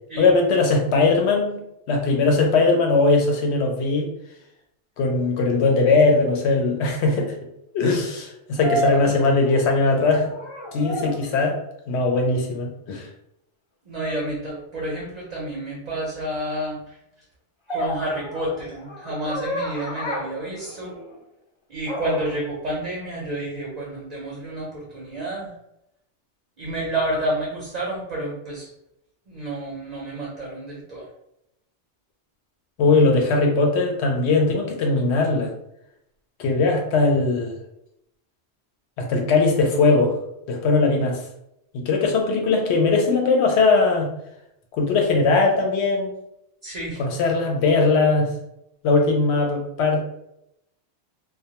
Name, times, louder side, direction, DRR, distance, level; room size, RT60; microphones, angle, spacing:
voice 1, 0.2-1.6 1.9-4.1 5.0-7.3 7.7-10.3 10.7-11.6 11.9-13.1 32.8-35.5 36.4-37.6 39.0-40.2 40.5-41.2 41.7-44.1 44.7-46.1 47.0-48.3 48.8-50.0, left 3 dB, 75° left, 2 dB, 0.8 m, -20 dB
sound 1, 6.2-6.3 8.6-9.9 10.2-11.3 14.0-14.3 17.7-21.2 21.8-22.4, equal, 45° left, 0.4 m, -30 dB
voice 2, 13.9-17.0 17.7-20.9 21.7-25.5 26.6-28.7 29.3-31.1 46.6-47.0, right 1 dB, 45° right, -4 dB, 0.6 m, -30 dB
2.2 x 2.2 x 2.8 m, 0.80 s
omnidirectional pair, 1.2 m